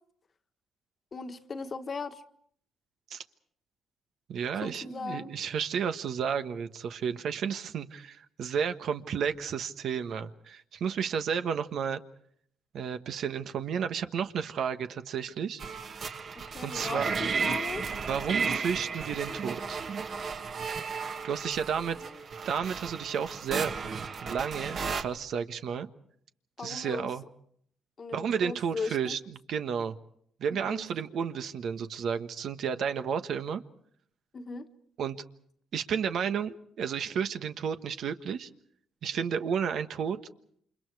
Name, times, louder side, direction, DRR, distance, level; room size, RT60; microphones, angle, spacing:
voice 1, 1.1-2.2 4.6-5.3 16.3-17.8 21.9-22.1 26.6-27.1 28.0-29.1 30.5-30.8 34.3-34.7, left 4 dB, 40° left, 1.5 m, -38 dB
voice 2, 4.3-12.0 12.7-15.6 16.6-17.1 18.1-19.8 21.2-22.0 22.4-23.7 24.2-25.9 26.6-27.2 28.1-29.9 30.4-33.6 35.0-35.2 35.7-38.5 39.0-40.2, right 7 dB, 70° right, 1.3 m, -32 dB
sound 1, 15.6-25.0, right 5 dB, 55° right, 1.9 m, -34 dB
28.5 x 26.0 x 4.8 m
cardioid pair, 90°, 0 cm